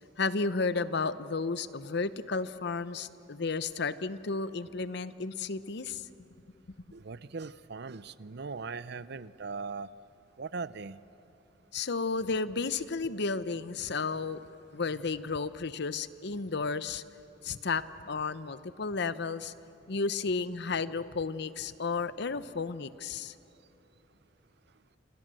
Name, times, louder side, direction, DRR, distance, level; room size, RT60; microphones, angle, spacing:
voice 1, 0.2-6.0 11.7-17.0 17.4-19.5 19.9-23.3, left 4 dB, 65° left, 14 dB, 0.8 m, -33 dB
voice 2, 6.9-9.9 10.4-11.0, right 4 dB, 65° right, 16 dB, 0.7 m, -39 dB
29.0 x 26.5 x 7.7 m, 2.9 s
head